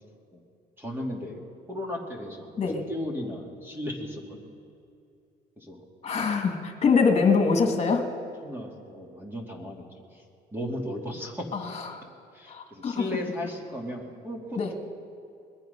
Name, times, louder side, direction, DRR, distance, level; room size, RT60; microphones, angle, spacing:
voice 1, 0.8-1.4 1.7-4.6 5.6-5.8 8.4-10.3 10.5-11.5 12.3-14.7, left 1 dB, 15° right, -1 dB, 2.3 m, -36 dB
voice 2, 6.0-8.0 11.9-12.0 12.5-13.0 14.6-14.7, left 5 dB, 40° left, 3 dB, 2.1 m, -23 dB
21.5 x 9.3 x 5.4 m, 2.5 s
cardioid pair, 110°, 17 cm